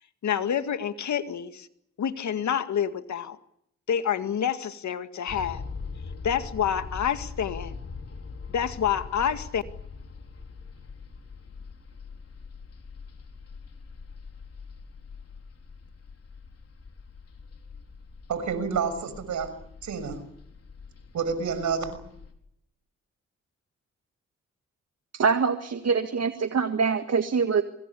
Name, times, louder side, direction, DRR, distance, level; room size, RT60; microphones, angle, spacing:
voice 1, 0.2-1.7 2.0-3.4 3.9-5.6 6.2-7.8 8.5-9.6, left 8 dB, 70° left, 9 dB, 2.0 m, -28 dB
sound 1, 5.3-22.3, left 4 dB, 55° left, 4.9 m, -42 dB
voice 2, 18.3-19.5 19.8-20.2 21.1-22.0, right 6 dB, 75° right, 11 dB, 6.2 m, -29 dB
voice 3, 25.1-27.6, right 5 dB, 60° right, 7 dB, 1.9 m, -24 dB
25.5 x 21.5 x 8.4 m, 0.72 s
supercardioid pair, 55°, 30 cm